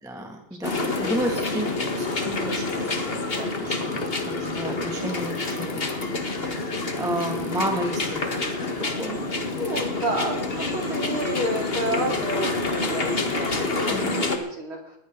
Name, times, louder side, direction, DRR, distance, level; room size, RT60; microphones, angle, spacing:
voice 1, 0.0-5.8 6.3-6.7 6.9-8.3 8.8-9.3 13.9-14.3, right 1 dB, ahead, 1 dB, 1.8 m, -32 dB
sound 1, 0.6-14.4, left 3 dB, 30° left, 1.1 m, -27 dB
voice 2, 0.6-1.1 5.5-5.7 9.4-15.0, right 1 dB, 40° right, 1 dB, 3.8 m, -31 dB
21.0 x 15.5 x 4.0 m, 0.74 s
omnidirectional pair, 3.6 m